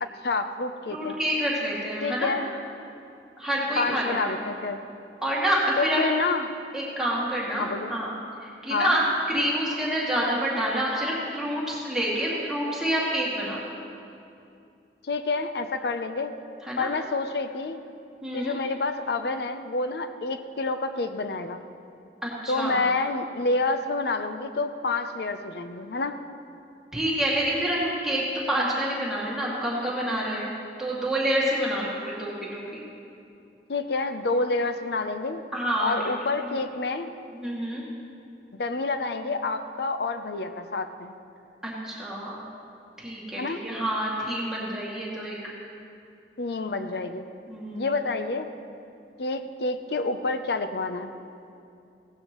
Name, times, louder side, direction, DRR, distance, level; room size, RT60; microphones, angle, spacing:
voice 1, 0.0-1.2 2.0-2.5 3.8-4.8 5.8-6.5 7.6-7.9 8.7-8.9 15.0-16.3 16.8-17.8 18.3-21.6 22.5-26.2 33.7-35.4 35.8-37.1 38.5-41.1 43.4-43.6 46.4-47.3 47.7-48.5 49.2-51.2, left 3 dB, 65° left, 9 dB, 0.6 m, -28 dB
voice 2, 0.9-2.4 3.4-4.4 5.2-6.0 6.7-8.1 8.4-9.0 9.3-13.8 16.6-16.9 18.2-18.5 22.2-22.8 26.9-30.5 30.8-32.8 35.5-36.0 37.3-37.8 41.6-42.4 43.0-45.4 47.5-48.0, right 1 dB, 5° right, -7 dB, 2.2 m, -28 dB
16.5 x 12.0 x 3.0 m, 2.6 s
head